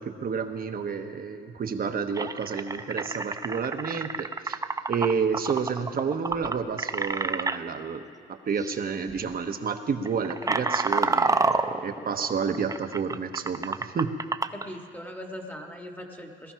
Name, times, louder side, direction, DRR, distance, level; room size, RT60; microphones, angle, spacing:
voice 1, 0.0-4.6 4.9-8.0 8.3-11.5 11.8-14.1, right 6 dB, 45° right, 7 dB, 1.2 m, -30 dB
sound 1, 1.6-1.7 2.1-7.6 8.6-8.8 9.1-9.3 9.9-14.7, right 3 dB, 15° right, 0.6 m, -29 dB
voice 2, 14.5-16.5, equal, 10° left, 2 dB, 1.5 m, -40 dB
18.5 x 13.0 x 5.8 m, 2.1 s
cardioid pair, 90°, 20 cm